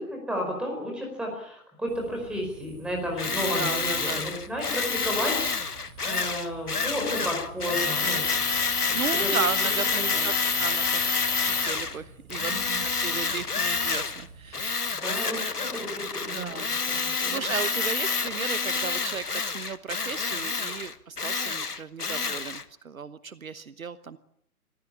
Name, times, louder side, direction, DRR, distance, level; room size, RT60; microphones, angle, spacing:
voice 1, 0.0-5.7 6.0-8.4 8.9-9.3 10.1-10.2 12.4-12.8 14.5-14.6 14.9-16.6 16.9-17.5, equal, ahead, 0 dB, 4.9 m, -33 dB
sound 1, 1.9-14.6, right 3 dB, 30° right, 5.0 m, -48 dB
Tools, 3.2-12.0 12.3-14.2 14.5-22.6, left 4 dB, 80° left, 1.5 m, -28 dB
voice 2, 3.5-4.2 8.7-11.0 11.4-12.5 12.8-14.9 16.3-16.7 17.0-24.2, right 6 dB, 65° right, 16 dB, 1.1 m, -35 dB
24.5 x 15.0 x 8.6 m, 0.72 s
figure-of-eight pair, 135°, 45 cm